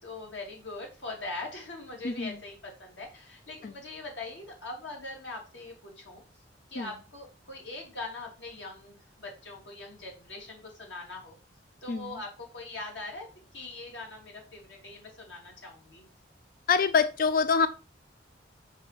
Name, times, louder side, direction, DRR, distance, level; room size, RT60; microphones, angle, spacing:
voice 1, 0.0-6.2 6.7-11.3 11.8-13.3 13.5-16.0, left 2 dB, 90° left, 3.1 m, -42 dB
voice 2, 16.7-17.7, left 5 dB, 50° left, 0.4 m, -25 dB
6.2 x 5.1 x 6.0 m
head